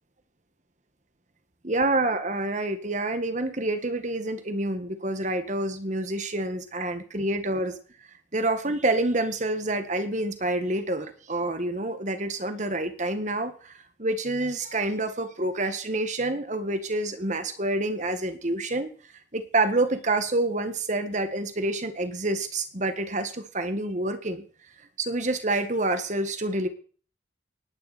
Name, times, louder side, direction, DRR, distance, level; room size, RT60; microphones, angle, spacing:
voice 1, 1.6-7.7 8.3-18.9 19.3-24.4 25.0-26.7, right 2 dB, 40° right, 9 dB, 1.7 m, -27 dB
19.0 x 10.5 x 4.3 m, 0.41 s
head